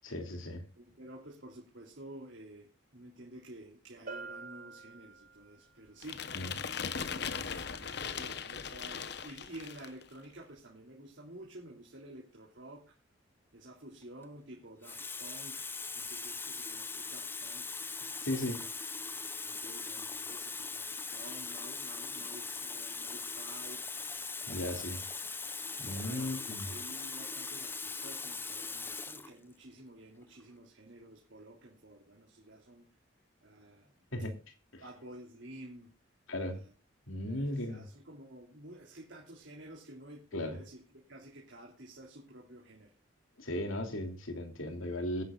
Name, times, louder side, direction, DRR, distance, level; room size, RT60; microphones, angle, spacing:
voice 1, 0.0-0.6 6.3-6.5 18.2-18.6 24.5-25.0 25.8-26.7 34.1-34.3 34.7-34.8 36.3-36.6 37.1-37.8 40.3-40.6 43.4-45.2, left 1 dB, 85° left, 2.9 m, -36 dB
voice 2, 0.8-6.3 6.6-13.0 13.5-17.8 18.5-18.8 19.4-23.8 24.4-25.0 25.8-32.9 33.4-34.3 34.8-36.0 36.4-36.7 37.2-42.9, right 1 dB, 65° right, 3.1 m, -51 dB
Bell, 4.1-5.7, right 4 dB, 50° right, 5.4 m, -46 dB
sound 1, 6.0-10.0, left 6 dB, 55° left, 0.9 m, -39 dB
Water tap faucet, 14.0-14.3 14.8-29.3 30.2-30.4, left 4 dB, 10° left, 0.7 m, -40 dB
21.5 x 10.5 x 2.4 m
head